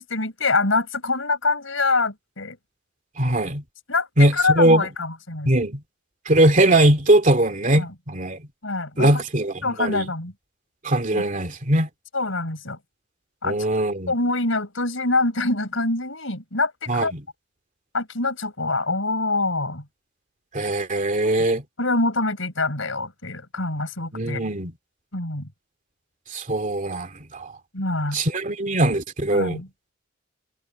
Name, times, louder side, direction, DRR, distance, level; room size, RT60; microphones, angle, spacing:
voice 1, 0.0-2.6 3.9-5.5 7.8-7.9 8.6-9.2 9.6-10.3 11.1-11.2 12.1-12.8 13.4-13.6 14.1-17.1 17.9-19.9 21.4-21.5 21.8-24.4 25.1-25.5 27.7-28.2 29.3-29.7, left 3 dB, 75° left, 5.4 m, -25 dB
voice 2, 3.2-3.6 4.2-4.8 5.5-5.8 6.3-8.4 9.0-10.0 10.8-11.9 13.4-14.1 16.9-17.2 20.5-21.6 24.1-24.7 26.3-27.5 28.1-29.6, right 1 dB, 40° right, 2.5 m, -20 dB
head